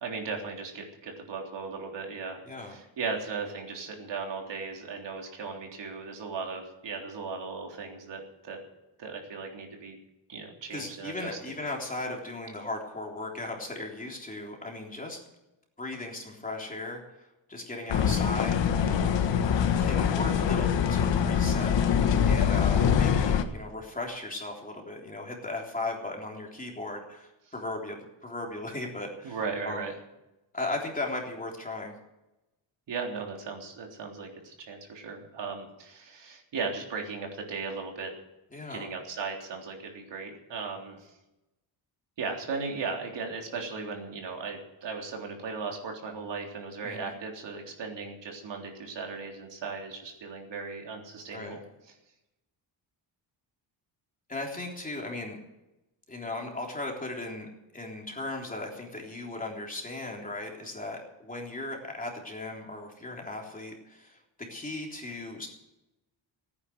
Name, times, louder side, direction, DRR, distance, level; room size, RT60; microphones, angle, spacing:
voice 1, 0.0-2.4 2.7-8.6 9.0-10.0 10.3-11.4 29.2-29.9 32.9-38.1 38.7-41.1 42.2-51.6, right 4 dB, 70° right, 1 dB, 3.6 m, -37 dB
voice 2, 2.4-2.8 10.7-15.2 15.8-17.0 17.5-19.1 19.8-29.4 29.6-29.9 30.5-31.9 38.5-38.9 46.8-47.1 51.3-51.6 54.3-55.4 56.1-57.5 57.7-64.2 64.5-65.5, left 2 dB, 20° left, 0 dB, 3.5 m, -37 dB
sound 1, 17.9-23.4, left 7 dB, 75° left, 1.5 m, -24 dB
16.0 x 9.7 x 8.0 m, 0.95 s
wide cardioid pair, 130°, 45 cm